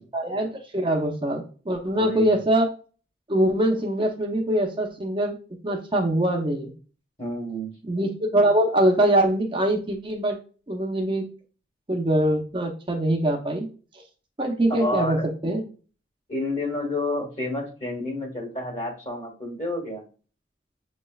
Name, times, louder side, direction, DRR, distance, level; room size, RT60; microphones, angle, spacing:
voice 1, 0.1-2.7 3.3-5.3 5.6-6.7 7.9-10.4 10.7-11.3 11.9-13.7 14.4-15.2 15.4-15.6, right 1 dB, 25° right, 2 dB, 0.7 m, -23 dB
voice 2, 1.9-2.4 7.2-7.7 14.7-15.3 16.3-20.0, left 1 dB, 35° left, 2 dB, 1.6 m, -29 dB
6.8 x 3.2 x 2.3 m, 0.38 s
head